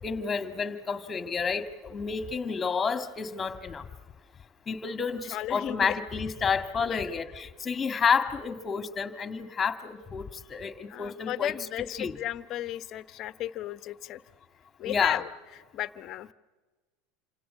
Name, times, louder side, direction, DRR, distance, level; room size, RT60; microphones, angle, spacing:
voice 1, 0.0-3.8 4.7-10.2 10.5-11.5 12.0-12.1 14.8-15.2, left 5 dB, 25° left, 9 dB, 1.9 m, -30 dB
voice 2, 5.3-6.0 6.8-7.0 10.9-14.2 14.8-16.3, left 13 dB, 45° left, 15 dB, 0.9 m, -35 dB
28.0 x 26.5 x 6.8 m, 1.3 s
hypercardioid pair, 80°, 0 cm